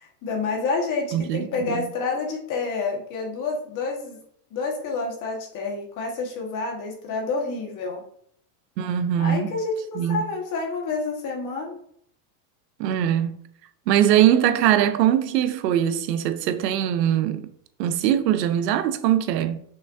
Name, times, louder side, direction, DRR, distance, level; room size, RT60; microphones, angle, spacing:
voice 1, 0.2-4.2 4.5-8.0 9.2-11.8, left 4 dB, 40° left, 1.6 m, -28 dB
voice 2, 1.1-1.9 8.8-9.5 10.0-10.2 12.8-13.4 13.9-17.5 17.8-19.6, right 10 dB, 85° right, 0.7 m, -21 dB
5.9 x 3.2 x 2.6 m
supercardioid pair, 120°, 49 cm